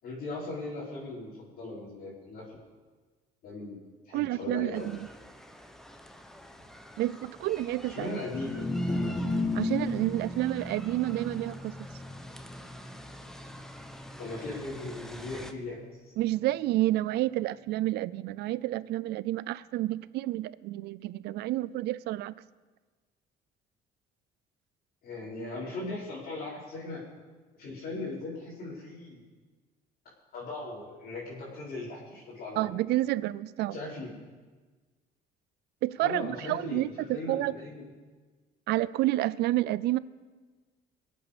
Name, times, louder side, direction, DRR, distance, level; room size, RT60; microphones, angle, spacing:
voice 1, 0.0-2.4 3.4-3.8 4.0-4.9 7.9-8.6 14.2-15.8 16.0-16.1 25.0-27.0 27.6-29.2 30.3-32.7 33.7-34.1 36.0-37.9, left 2 dB, 65° left, -9 dB, 4.8 m, -38 dB
voice 2, 4.1-5.1 7.0-8.2 9.5-11.8 16.2-22.3 32.6-33.8 35.8-37.6 38.7-40.0, right 16 dB, 80° right, 18 dB, 0.5 m, -29 dB
sound 1, 4.7-15.5, equal, 5° left, 1.1 m, -48 dB
sound 2, 8.2-14.6, left 2 dB, 20° left, 2.0 m, -34 dB
23.5 x 8.5 x 5.1 m, 1.4 s
cardioid pair, 110°, 17 cm